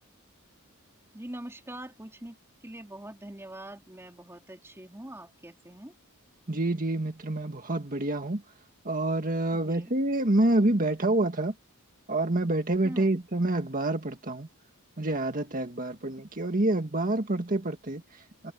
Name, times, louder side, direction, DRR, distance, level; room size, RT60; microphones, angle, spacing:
voice 1, 1.1-2.4 2.6-5.9 9.5-9.9 12.8-13.2, right 1 dB, 10° right, 2.6 m, -43 dB
voice 2, 6.5-8.4 8.9-11.5 12.1-14.5 15.0-18.5, right 2 dB, 40° right, 1.7 m, -27 dB
head